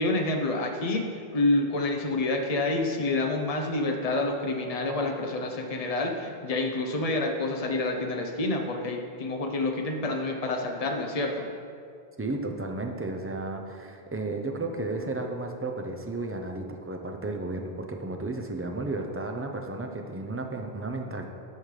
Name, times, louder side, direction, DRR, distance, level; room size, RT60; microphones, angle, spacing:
voice 1, 0.0-11.5, left 2 dB, 40° left, 3 dB, 0.8 m, -28 dB
voice 2, 12.2-21.3, right 2 dB, 20° right, 3 dB, 0.4 m, -33 dB
12.0 x 5.2 x 3.3 m, 2.3 s
omnidirectional pair, 1.0 m